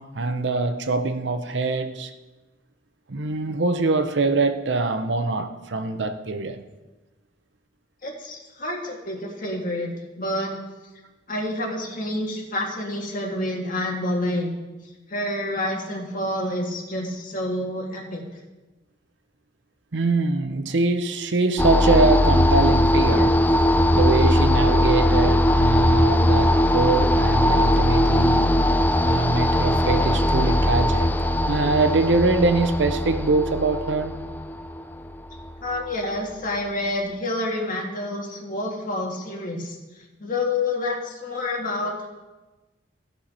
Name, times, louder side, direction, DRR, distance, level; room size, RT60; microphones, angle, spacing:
voice 1, 0.0-2.1 3.1-6.6 19.9-23.4 23.9-28.6 29.0-31.1 31.5-34.2, right 3 dB, 70° right, 0.8 m, -23 dB
voice 2, 8.0-9.9 10.2-10.5 11.3-14.5 15.1-18.2 35.6-42.1, left 1 dB, 50° left, 1.8 m, -28 dB
sound 1, 21.6-35.7, left 1 dB, 10° left, 0.3 m, -20 dB
16.0 x 5.8 x 4.3 m
head